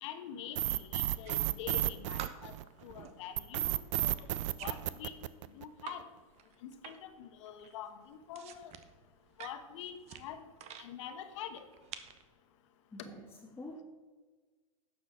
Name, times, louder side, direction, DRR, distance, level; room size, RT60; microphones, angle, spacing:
voice 1, 0.0-2.6 2.8-4.1 4.6-5.1 5.5-6.0 6.6-8.7 9.4-10.5 10.8-11.7, left 9 dB, 60° left, 9 dB, 1.3 m, -45 dB
sound 1, 0.6-2.8 3.4-5.8, right 14 dB, 60° right, 0.5 m, -32 dB
sound 2, 1.0-1.9 2.2-6.0 6.3-7.2 7.5-10.9 11.5-12.2, right 9 dB, 35° right, 1.0 m, -49 dB
voice 2, 12.9-13.8, left 1 dB, 15° left, -2 dB, 1.5 m, -47 dB
11.5 x 7.4 x 4.3 m, 1.4 s
hypercardioid pair, 100°, 18 cm